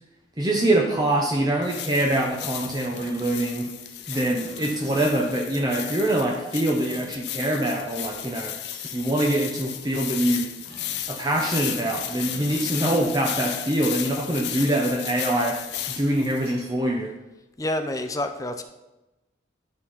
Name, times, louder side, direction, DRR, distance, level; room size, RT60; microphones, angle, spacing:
voice 1, 0.4-3.6 4.1-8.5 8.9-10.5 11.1-15.6 15.9-17.1, right 1 dB, 20° right, 1 dB, 0.8 m, -24 dB
sound 1, 1.2-16.7, right 1 dB, 60° right, 3.0 m, -47 dB
sound 2, 1.6-16.5, left 11 dB, 65° left, 0.6 m, -34 dB
voice 2, 17.6-18.6, left 1 dB, 20° left, 7 dB, 0.6 m, -28 dB
12.0 x 4.2 x 5.7 m, 1.0 s
head